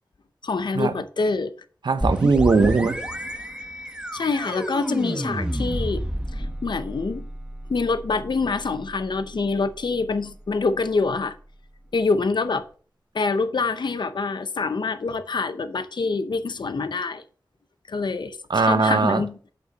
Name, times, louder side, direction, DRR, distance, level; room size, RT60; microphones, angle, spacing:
voice 1, 0.4-1.5 4.1-6.0 6.3-7.3 7.7-11.3 11.9-12.6 13.1-17.2 17.9-19.5, left 4 dB, 85° left, 0.6 m, -26 dB
voice 2, 1.8-3.0 18.5-19.2, right 4 dB, 80° right, 0.7 m, -19 dB
sound 1, 2.0-11.6, equal, 10° right, 1.0 m, -31 dB
8.2 x 5.5 x 4.0 m
wide cardioid pair, 75°, 8 cm